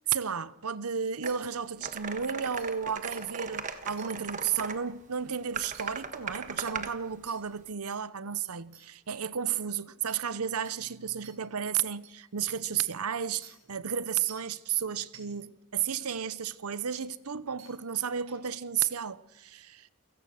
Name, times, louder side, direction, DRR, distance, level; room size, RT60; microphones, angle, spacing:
voice 1, 0.1-19.9, right 8 dB, 90° right, 0.8 m, -33 dB
sound 1, 1.2-1.3 1.8-4.8 5.6-6.9, right 5 dB, 35° right, 1.5 m, -38 dB
sound 2, 1.3-1.4 2.1-2.2 2.6-2.7 3.1-3.2 4.0-4.1 5.7-5.8 6.6-6.7 7.3-7.4 7.9-8.0 8.7-8.8 9.5-9.6 10.1-10.2 10.6-10.8 11.2-11.3 12.0-12.1 12.6-12.7 13.4-13.5 14.3-14.5 15.1-15.2 16.1-16.2 16.9-17.0 17.6-17.7 18.3-18.5, right 9 dB, 75° right, 5.7 m, -51 dB
29.0 x 17.0 x 6.5 m
head